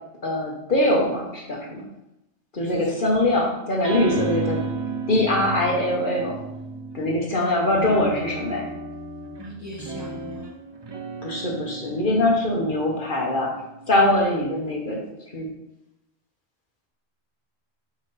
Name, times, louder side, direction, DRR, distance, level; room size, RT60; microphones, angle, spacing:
voice 1, 0.2-1.8 2.5-4.6 5.1-6.4 6.9-8.7 11.2-13.5 13.9-15.0 15.3-15.5, left 1 dB, 50° left, -1 dB, 1.2 m, -22 dB
voice 2, 2.7-3.0 7.4-7.6 9.4-10.5, left 1 dB, 15° right, -4 dB, 1.1 m, -39 dB
sound 1, 3.8-7.2 7.7-14.5, right 3 dB, 30° right, 0.5 m, -34 dB
5.7 x 4.8 x 4.1 m, 0.87 s
omnidirectional pair, 1.1 m